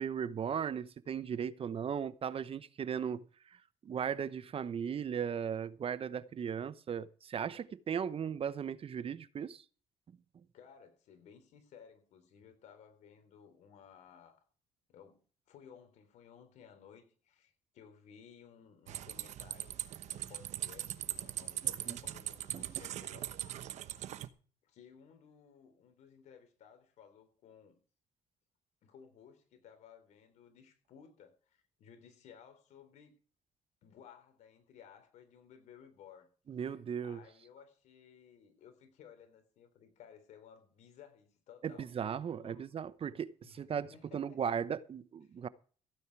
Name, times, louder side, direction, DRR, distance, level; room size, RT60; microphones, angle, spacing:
voice 1, 0.0-3.3 3.8-9.6 21.9-22.0 22.5-22.7 36.5-37.2 41.6-45.5, right 7 dB, 50° right, 1.0 m, -37 dB
voice 2, 10.5-14.4 14.9-23.4 24.6-27.8 28.8-33.2 33.8-36.3 36.7-41.9 42.4-42.7 43.4-44.4 45.2-45.4, left 7 dB, 75° left, 4.0 m, -58 dB
sound 1, 18.9-24.3, right 12 dB, 75° right, 1.1 m, -40 dB
16.0 x 9.3 x 4.8 m
supercardioid pair, 65°, 12 cm